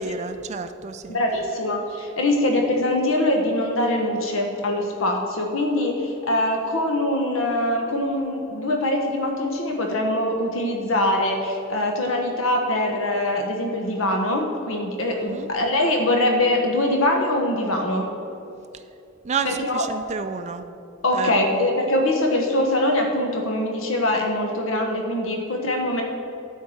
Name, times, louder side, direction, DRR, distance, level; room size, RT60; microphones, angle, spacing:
voice 1, 0.0-1.2 15.2-15.5 18.7-18.8 19.2-20.7 21.1-21.7, right 5 dB, 35° right, 8 dB, 0.4 m, -30 dB
voice 2, 1.1-18.1 19.4-19.8 21.0-26.0, left 1 dB, 80° left, 2 dB, 1.2 m, -23 dB
11.0 x 4.6 x 7.8 m, 2.8 s
head